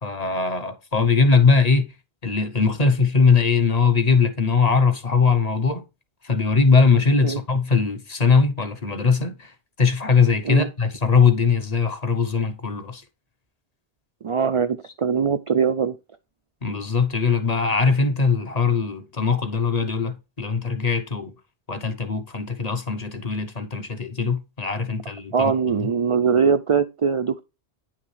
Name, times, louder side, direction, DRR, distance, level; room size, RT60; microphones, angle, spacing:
voice 1, 0.0-1.9 2.2-5.8 6.2-13.0 16.6-21.3 21.7-25.9, left 5 dB, 40° left, 0.9 m, -21 dB
voice 2, 14.2-16.0 25.3-27.4, right 6 dB, 60° right, 0.3 m, -21 dB
9.7 x 5.8 x 3.2 m
omnidirectional pair, 1.1 m